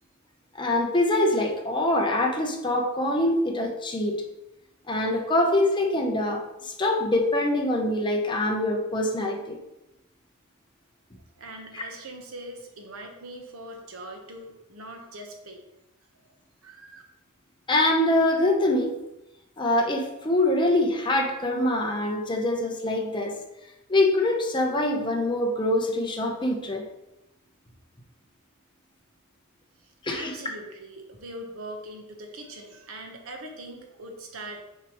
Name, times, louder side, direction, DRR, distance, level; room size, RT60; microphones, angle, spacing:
voice 1, 0.6-4.2 4.9-9.6 11.7-11.8 17.7-18.9 19.6-23.4 23.9-26.9 30.0-30.3, left 1 dB, 20° left, 1 dB, 0.8 m, -24 dB
voice 2, 11.4-15.7 16.6-17.0 29.8-34.6, right 1 dB, 70° right, 3 dB, 1.1 m, -41 dB
6.5 x 4.9 x 3.0 m, 0.91 s
head